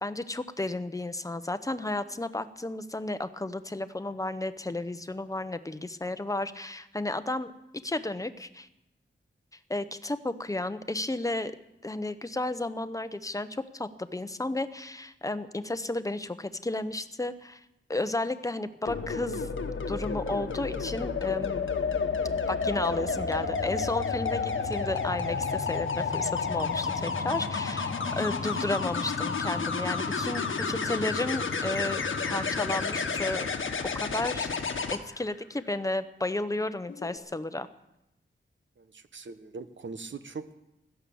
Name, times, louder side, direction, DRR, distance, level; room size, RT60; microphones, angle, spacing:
voice 1, 0.0-7.5 7.8-8.7 9.7-11.5 11.8-17.6 17.9-19.5 19.9-21.6 22.5-33.5 33.9-34.5 34.9-37.7, left 2 dB, 15° left, 12 dB, 0.9 m, -33 dB
sound 1, 18.9-35.0 36.9-37.2, left 5 dB, 80° left, 1.5 m, -31 dB
voice 2, 38.8-40.5, right 4 dB, 70° right, 11 dB, 1.1 m, -41 dB
16.5 x 12.5 x 7.1 m, 0.88 s
wide cardioid pair, 120°, 20 cm